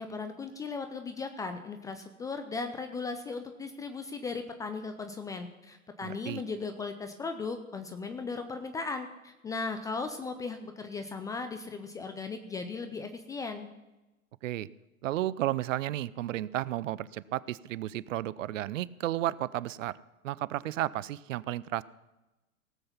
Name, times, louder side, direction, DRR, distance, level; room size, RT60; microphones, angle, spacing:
voice 1, 0.0-13.7, left 4 dB, 10° left, 7 dB, 0.4 m, -37 dB
voice 2, 6.0-6.4 14.4-14.7 15.0-19.9 20.2-21.8, right 14 dB, 60° right, 20 dB, 0.6 m, -33 dB
17.5 x 7.7 x 5.8 m, 1.0 s
hypercardioid pair, 100°, 43 cm